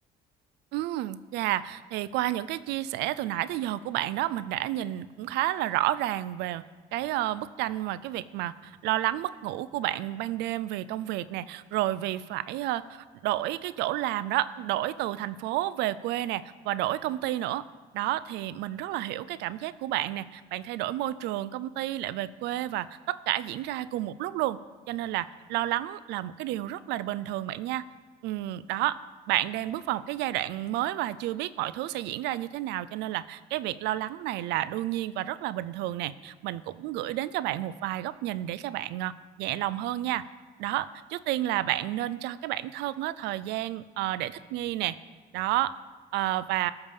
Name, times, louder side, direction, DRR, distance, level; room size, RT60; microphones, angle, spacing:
voice 1, 0.7-6.6 6.9-17.6 17.9-24.6 24.9-27.8 28.2-29.0 29.3-39.1 39.4-40.2 40.6-45.0 45.3-45.7 46.1-46.7, right 14 dB, 85° right, 17 dB, 0.4 m, -30 dB
13.5 x 7.0 x 5.5 m, 1.3 s
cardioid pair, 110°, 17 cm